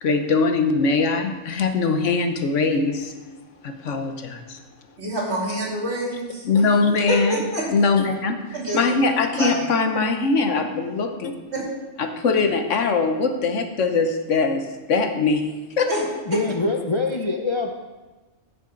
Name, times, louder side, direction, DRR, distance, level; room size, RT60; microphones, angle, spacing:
voice 1, 0.0-3.1 3.9-4.6 6.4-7.4 7.7-11.4 12.0-15.5 15.8-15.9, left 4 dB, 75° left, 6 dB, 1.3 m, -21 dB
voice 2, 5.0-6.4 7.1-7.6 8.5-8.8 9.4-9.7 11.5-11.6 15.9-16.0, right 1 dB, 60° right, -4 dB, 3.2 m, -26 dB
voice 3, 16.2-17.7, left 2 dB, 30° left, 2 dB, 0.6 m, -24 dB
15.5 x 6.7 x 3.9 m, 1.2 s
omnidirectional pair, 1.3 m